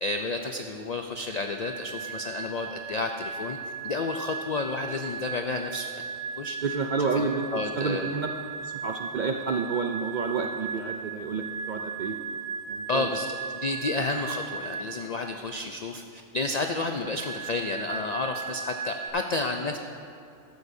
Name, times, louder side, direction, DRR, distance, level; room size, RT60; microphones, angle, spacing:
voice 1, 0.0-3.6 3.8-5.9 6.4-6.6 7.0-7.3 7.5-8.1 12.9-19.8, left 3 dB, 75° left, 5 dB, 0.3 m, -31 dB
sound 1, 1.3-15.0 16.9-19.1, right 5 dB, 85° right, 2.2 m, -37 dB
voice 2, 6.6-7.5 7.8-8.3 8.6-12.2 12.7-13.1, right 5 dB, 60° right, 3 dB, 0.4 m, -29 dB
14.5 x 11.5 x 2.7 m, 2.5 s
omnidirectional pair, 1.3 m